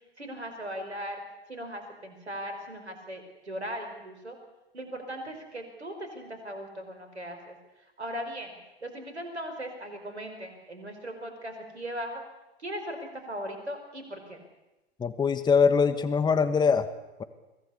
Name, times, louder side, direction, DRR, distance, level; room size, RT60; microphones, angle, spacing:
voice 1, 0.2-1.2 1.5-4.4 4.7-7.5 8.0-8.5 8.8-12.2 12.6-13.0 13.3-14.4, equal, 90° right, 6 dB, 5.0 m, -38 dB
voice 2, 15.0-16.9, left 5 dB, 15° left, 12 dB, 1.3 m, -23 dB
24.0 x 17.0 x 8.3 m, 1.0 s
figure-of-eight pair, 100°, 32 cm